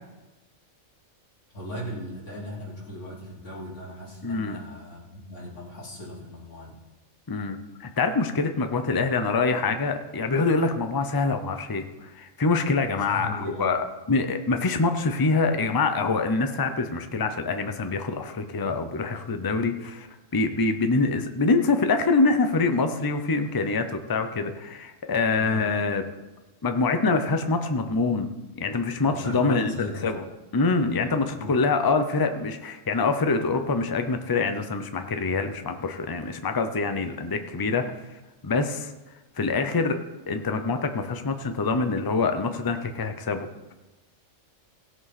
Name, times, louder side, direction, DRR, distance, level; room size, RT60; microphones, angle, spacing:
voice 1, 1.5-6.8 13.1-13.7 25.4-25.7 29.1-30.1 31.3-31.6, equal, 60° left, -5 dB, 3.4 m, -38 dB
voice 2, 4.2-4.6 7.3-13.8 14.1-20.1 20.3-26.0 26.6-28.3 28.6-30.2 30.5-37.9 38.4-38.9 39.4-40.0 40.3-43.5, left 3 dB, 25° left, 7 dB, 0.6 m, -25 dB
16.5 x 7.8 x 4.2 m, 1.1 s
omnidirectional pair, 1.4 m